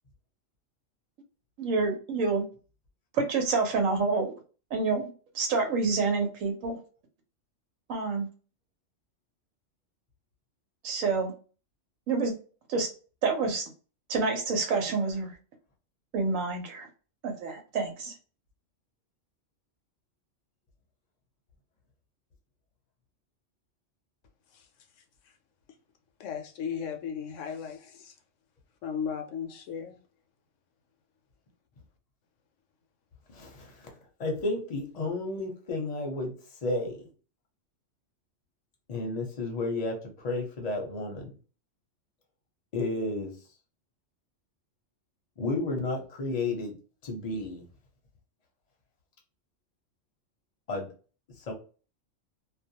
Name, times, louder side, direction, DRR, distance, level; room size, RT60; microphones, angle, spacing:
voice 1, 1.6-2.4 3.1-4.3 4.7-5.1 5.3-6.8 7.9-8.3 10.8-11.3 12.1-12.3 12.7-12.9 13.2-13.7 14.1-15.3 16.1-16.9 17.2-18.1, right 4 dB, 90° right, 1.1 m, -28 dB
voice 2, 26.2-28.1 28.8-30.0, left 7 dB, 75° left, 0.9 m, -35 dB
voice 3, 33.3-33.9 34.2-37.1 38.9-41.3 42.7-43.4 45.4-46.8 47.0-47.7 50.7-50.9 51.3-51.5, left 2 dB, 40° left, 0.7 m, -32 dB
2.4 x 2.2 x 2.7 m
omnidirectional pair, 1.3 m